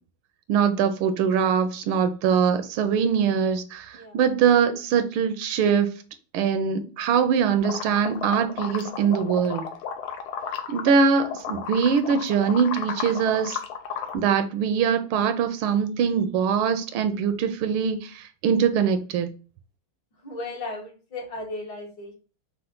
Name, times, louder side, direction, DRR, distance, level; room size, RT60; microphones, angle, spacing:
voice 1, 0.5-3.9 4.1-5.9 6.3-9.7 10.7-13.6 14.1-18.0 18.4-19.3, right 7 dB, 80° right, 1.5 m, -22 dB
sound 1, 7.6-11.0 11.2-14.2, left 7 dB, 80° left, 1.5 m, -33 dB
voice 2, 20.2-22.1, left 2 dB, 65° left, 2.1 m, -35 dB
5.6 x 2.2 x 3.7 m
omnidirectional pair, 2.3 m